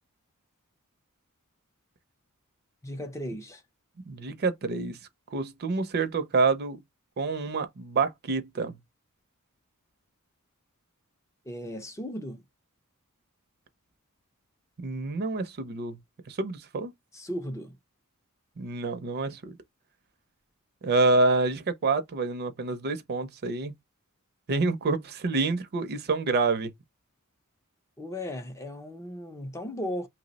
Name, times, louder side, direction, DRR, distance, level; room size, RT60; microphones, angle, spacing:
voice 1, 2.8-3.6 11.5-12.4 17.1-17.8 28.0-30.1, left 1 dB, 15° left, 0.4 m, -36 dB
voice 2, 4.1-5.0 5.3-6.8 7.2-8.8 14.8-16.0 16.3-16.9 18.6-19.6 20.8-23.7 24.5-26.7, right 3 dB, 45° right, 0.5 m, -27 dB
2.8 x 2.0 x 3.9 m
head